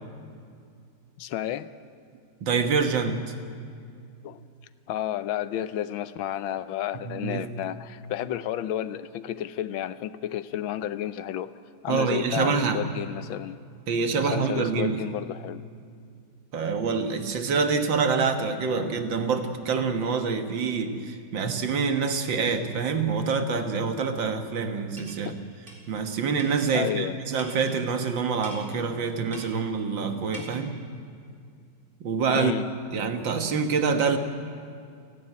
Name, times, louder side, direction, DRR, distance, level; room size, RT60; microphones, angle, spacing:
voice 1, 1.2-1.7 4.2-4.5 4.9-11.5 11.8-13.6 14.3-15.6 25.2-25.4 26.7-27.2 30.4-30.5 32.3-32.7, left 11 dB, 85° left, 14 dB, 1.5 m, -31 dB
voice 2, 2.4-3.3 7.1-7.5 11.9-12.8 13.9-15.0 16.5-25.4 25.9-30.7 32.0-32.5 32.9-34.2, right 5 dB, 70° right, 7 dB, 2.1 m, -26 dB
sound 1, 25.0-25.2 25.7-25.8 26.4-26.7 27.4-27.8 28.4-28.7 29.3-29.6 30.3-30.5, right 1 dB, 25° right, 4.0 m, -43 dB
30.0 x 12.0 x 9.6 m, 2.3 s
omnidirectional pair, 2.1 m